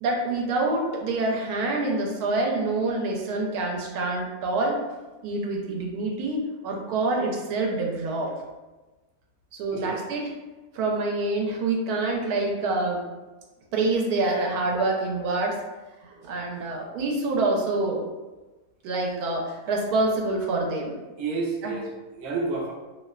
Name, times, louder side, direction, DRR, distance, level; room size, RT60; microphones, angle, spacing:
voice 1, 0.0-4.8 5.2-8.3 9.5-10.3 10.7-13.0 13.7-15.6 16.0-18.0 18.8-21.0 21.6-21.7, right 2 dB, 85° right, 0 dB, 1.1 m, -26 dB
voice 2, 21.2-22.7, right 3 dB, 65° right, -2 dB, 0.6 m, -30 dB
2.7 x 2.1 x 2.3 m, 1.2 s
omnidirectional pair, 1.6 m